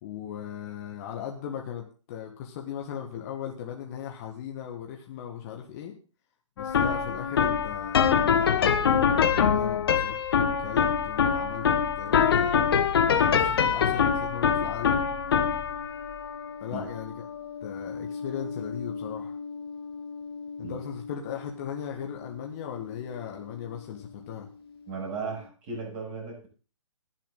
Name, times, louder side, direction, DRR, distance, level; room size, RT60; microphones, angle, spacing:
voice 1, 0.0-5.9 6.6-11.7 12.0-12.7 13.2-15.0 16.6-17.3 17.6-19.4 20.6-24.5, left 9 dB, 30° left, 2 dB, 1.8 m, -38 dB
sound 1, 6.6-23.8, left 7 dB, 45° left, 1.6 m, -26 dB
voice 2, 24.9-26.5, right 4 dB, 30° right, -1 dB, 7.9 m, -36 dB
20.5 x 7.5 x 4.0 m, 0.35 s
figure-of-eight pair, 130°, 17 cm